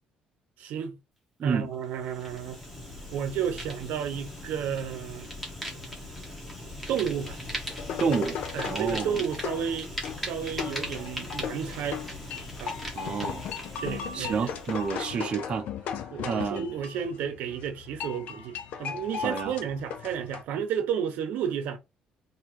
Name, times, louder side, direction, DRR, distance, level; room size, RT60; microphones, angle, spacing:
voice 1, 0.6-1.0 1.4-2.6 3.1-5.3 6.9-7.4 8.5-9.9 10.2-12.0 12.6-12.8 13.8-14.5 16.1-21.8, right 8 dB, 75° right, 0.8 m, -32 dB
Fire, 1.9-15.2, left 1 dB, 5° left, 1.5 m, -39 dB
sound 1, 7.5-20.4, left 8 dB, 65° left, 0.6 m, -37 dB
voice 2, 8.0-8.4 8.6-9.2 12.9-13.5 14.1-16.7 19.2-19.5, right 5 dB, 40° right, 0.6 m, -30 dB
3.7 x 2.8 x 4.4 m
cardioid pair, 155°, 3 cm